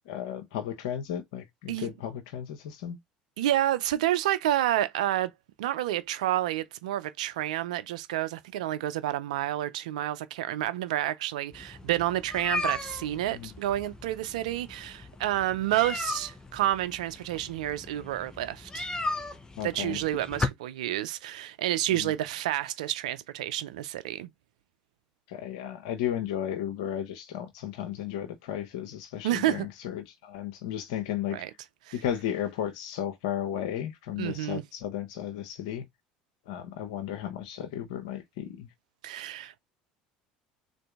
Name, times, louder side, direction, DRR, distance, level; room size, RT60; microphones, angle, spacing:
voice 1, 0.1-3.0 13.3-13.5 19.6-20.0 21.9-22.1 25.3-31.4 31.9-35.8 36.5-38.7, left 10 dB, 80° left, 0.8 m, -34 dB
voice 2, 3.4-5.3 5.6-18.9 19.6-24.3 29.2-29.7 31.3-31.5 31.9-32.0 34.2-34.6 39.0-39.6, right 13 dB, 85° right, 0.5 m, -29 dB
sound 1, 11.5-20.5, left 2 dB, 20° left, 0.8 m, -36 dB
3.8 x 2.6 x 3.4 m
hypercardioid pair, 80°, 4 cm